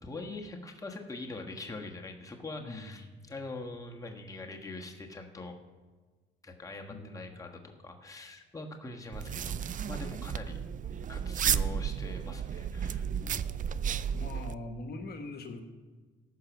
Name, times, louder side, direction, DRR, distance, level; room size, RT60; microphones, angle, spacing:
voice 1, 0.0-5.5 6.4-9.6 9.9-10.6 11.1-13.1, left 2 dB, 15° left, 2 dB, 1.4 m, -43 dB
voice 2, 2.6-3.2 6.9-7.2 13.1-13.6 14.1-15.6, left 2 dB, 50° left, 5 dB, 1.3 m, -42 dB
sound 1, 9.1-14.5, right 8 dB, 40° right, 0.4 m, -33 dB
14.5 x 5.8 x 5.9 m, 1.4 s
cardioid pair, 90°, 20 cm